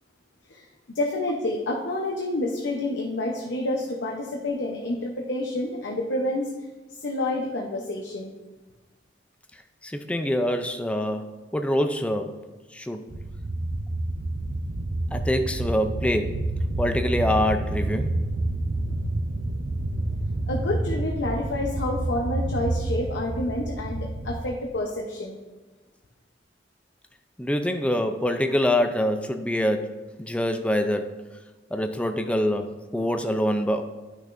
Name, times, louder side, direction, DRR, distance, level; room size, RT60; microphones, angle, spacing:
voice 1, 0.9-6.5 7.0-8.3 20.5-25.4, left 1 dB, 75° left, 0 dB, 0.8 m, -28 dB
voice 2, 9.8-12.4 12.7-13.0 15.1-16.4 16.8-18.2 27.4-31.2 31.7-33.8, left 1 dB, 5° left, 6 dB, 0.4 m, -25 dB
sound 1, 13.1-24.5, right 2 dB, 60° right, 0.6 m, -28 dB
10.5 x 6.2 x 2.6 m, 1.2 s
head